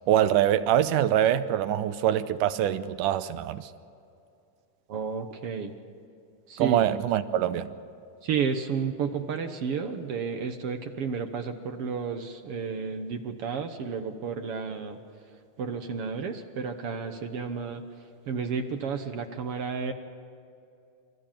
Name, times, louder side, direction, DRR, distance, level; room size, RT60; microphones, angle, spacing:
voice 1, 0.1-3.7 6.6-7.7, right 11 dB, 80° right, 12 dB, 2.2 m, -24 dB
voice 2, 4.9-5.7 6.5-6.9 8.2-15.0 15.6-17.8 18.3-19.9, right 6 dB, 60° right, 6 dB, 1.6 m, -32 dB
27.5 x 13.5 x 9.0 m, 2.5 s
omnidirectional pair, 3.7 m